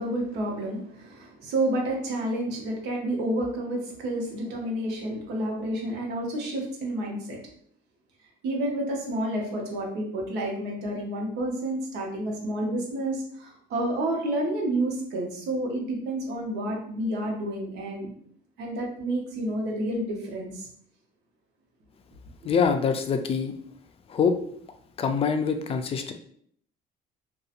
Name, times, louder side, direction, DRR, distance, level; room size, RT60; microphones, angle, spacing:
voice 1, 0.0-7.4 8.4-18.1 18.6-20.7 22.4-22.5, right 1 dB, 85° right, 0 dB, 0.9 m, -30 dB
voice 2, 22.4-23.5 24.1-24.3 25.0-26.1, left 6 dB, 35° left, 7 dB, 0.3 m, -24 dB
2.8 x 2.2 x 2.5 m, 0.62 s
cardioid pair, 110°, 17 cm